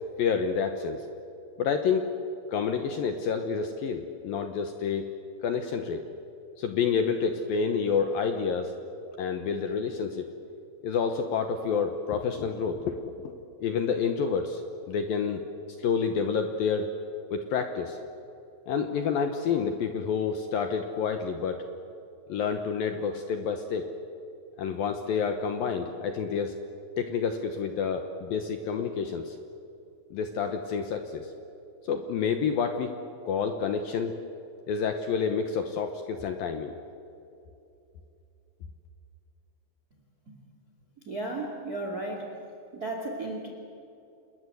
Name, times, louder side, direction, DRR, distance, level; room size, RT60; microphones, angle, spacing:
voice 1, 0.2-1.1 1.6-2.1 2.5-5.1 5.4-6.0 6.6-8.8 9.2-10.3 10.8-13.3 13.6-14.6 14.9-15.4 15.8-16.9 17.3-18.0 18.7-21.7 22.3-23.9 24.6-26.5 27.0-29.4 30.1-31.3 31.8-33.0 33.2-34.2 34.7-36.8, left 6 dB, 70° left, 6 dB, 2.2 m, -29 dB
voice 2, 41.0-42.3 42.7-43.5, right 2 dB, 25° right, 2 dB, 2.1 m, -34 dB
28.0 x 21.0 x 7.9 m, 2.8 s
omnidirectional pair, 5.5 m